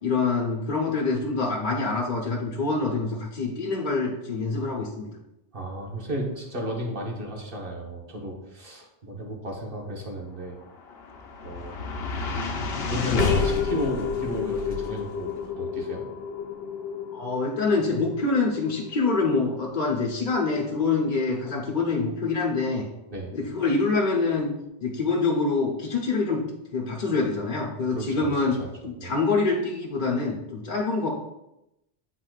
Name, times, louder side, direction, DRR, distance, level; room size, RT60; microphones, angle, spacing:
voice 1, 0.0-5.1 17.1-22.9 23.3-24.5 24.8-26.4 26.7-28.6 28.8-31.1, left 3 dB, 50° left, -2 dB, 1.1 m, -25 dB
voice 2, 5.5-10.6 11.4-12.0 12.9-16.0 23.1-23.3 27.9-28.3 28.6-28.7 29.0-29.1, equal, 60° right, -1 dB, 1.5 m, -34 dB
sound 1, 10.6-23.0, left 5 dB, 75° left, 1.0 m, -31 dB
9.5 x 4.2 x 2.4 m, 0.89 s
omnidirectional pair, 1.0 m